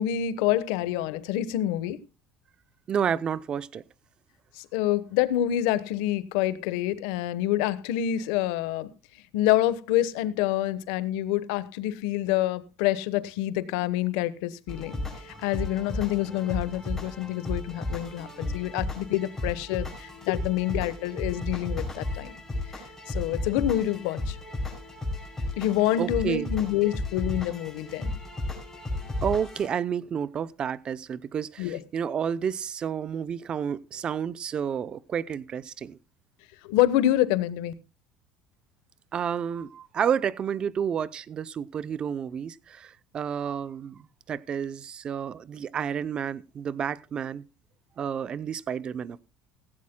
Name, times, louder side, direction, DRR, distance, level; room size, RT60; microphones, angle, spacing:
voice 1, 0.0-2.0 4.6-8.9 9.3-15.0 15.2-22.3 23.1-24.4 25.6-28.1 31.6-31.8 36.6-37.7, left 13 dB, 90° left, 1.1 m, -27 dB
voice 2, 2.9-3.8 26.0-26.5 29.2-36.0 39.1-47.4 48.0-49.2, right 8 dB, 30° right, 0.6 m, -30 dB
sound 1, 14.7-29.7, left 2 dB, 10° left, 5.4 m, -34 dB
16.5 x 16.0 x 2.2 m
cardioid pair, 155°, 3 cm